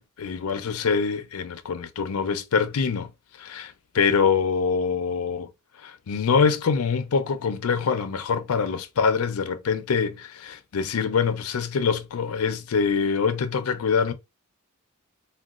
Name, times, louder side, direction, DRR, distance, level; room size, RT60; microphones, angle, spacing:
voice 1, 0.0-3.1 3.4-5.5 5.8-14.1, left 5 dB, 80° left, 0.4 m, -24 dB
3.8 x 2.2 x 2.4 m
head